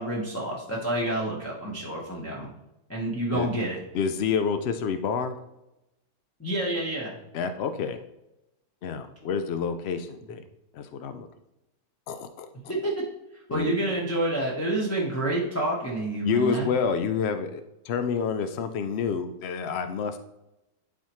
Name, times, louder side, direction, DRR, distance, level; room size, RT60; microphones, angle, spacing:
voice 1, 0.0-2.5 2.9-3.8 6.4-7.2 12.7-13.0 13.5-16.7, right 1 dB, 10° left, -5 dB, 0.9 m, -28 dB
voice 2, 3.9-5.4 7.3-8.0 8.8-10.4 10.7-11.3 12.1-12.5 13.5-13.8 16.2-20.2, left 6 dB, 85° left, 9 dB, 0.5 m, -28 dB
12.0 x 4.2 x 3.0 m, 0.92 s
omnidirectional pair, 1.7 m